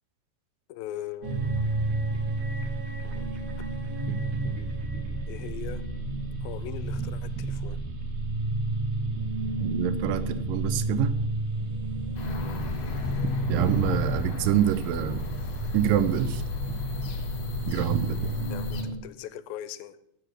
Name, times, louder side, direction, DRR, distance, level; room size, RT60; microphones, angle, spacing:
voice 1, 0.7-1.5 3.0-3.4 5.3-5.9 6.4-7.8 12.3-12.6 18.5-20.0, left 12 dB, 90° left, 13 dB, 2.4 m, -40 dB
sound 1, 1.2-19.0, right 2 dB, 65° right, 2.3 m, -31 dB
voice 2, 9.6-11.2 13.5-15.2 15.7-16.4 17.7-18.2, right 11 dB, 80° right, 12 dB, 2.1 m, -26 dB
sound 2, 12.2-18.8, left 3 dB, 60° left, 1.9 m, -33 dB
9.6 x 6.0 x 6.5 m, 0.75 s
omnidirectional pair, 4.1 m